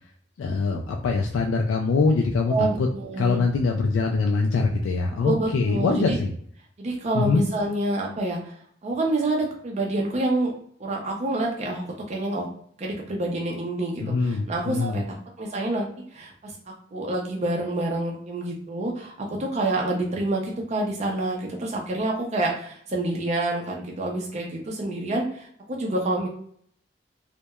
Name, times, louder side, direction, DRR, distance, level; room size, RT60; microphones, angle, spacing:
voice 1, 0.4-2.9 3.2-6.3 7.1-7.4 14.0-15.0, left 4 dB, 85° left, 1 dB, 0.3 m, -23 dB
voice 2, 2.5-3.4 5.2-6.2 6.8-8.5 8.8-10.5 10.8-12.5 12.8-15.0 15.4-16.5 16.9-26.3, right 2 dB, 35° right, -1 dB, 0.4 m, -27 dB
2.8 x 2.1 x 2.2 m, 0.62 s
head